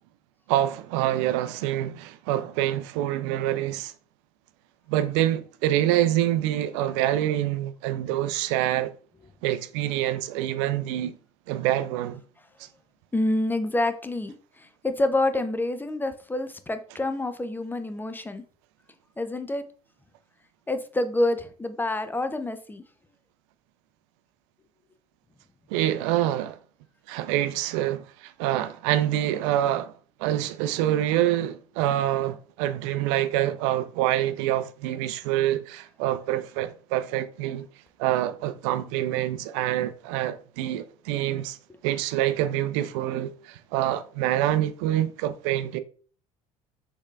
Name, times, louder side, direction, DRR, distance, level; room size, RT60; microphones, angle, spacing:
voice 1, 0.5-3.9 4.9-8.9 9.4-11.2 11.5-12.2 25.7-26.6 27.1-29.9 30.2-37.7 38.0-41.6 41.8-45.8, right 13 dB, 60° right, 0.4 m, -26 dB
voice 2, 13.1-18.4 19.2-19.6 20.7-22.8, left 2 dB, 10° left, 0.5 m, -27 dB
6.3 x 3.5 x 2.3 m
figure-of-eight pair, 60°, 18 cm